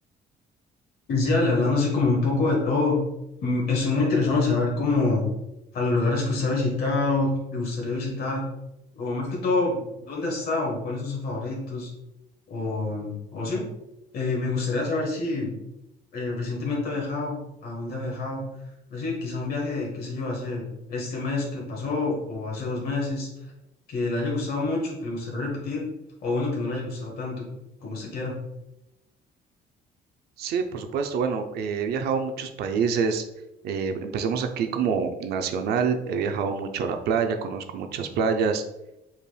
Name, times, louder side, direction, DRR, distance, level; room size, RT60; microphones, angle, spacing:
voice 1, 1.1-3.0 3.4-5.2 5.7-8.4 8.9-11.9 12.5-13.6 14.1-15.5 16.1-18.4 18.9-23.3 23.9-25.9 26.2-27.4 27.8-28.4, left 3 dB, 65° left, -2 dB, 1.3 m, -26 dB
voice 2, 30.4-33.2 33.6-38.6, right 6 dB, 75° right, 6 dB, 0.5 m, -26 dB
5.4 x 3.3 x 2.2 m, 0.90 s
cardioid pair, 110°, 17 cm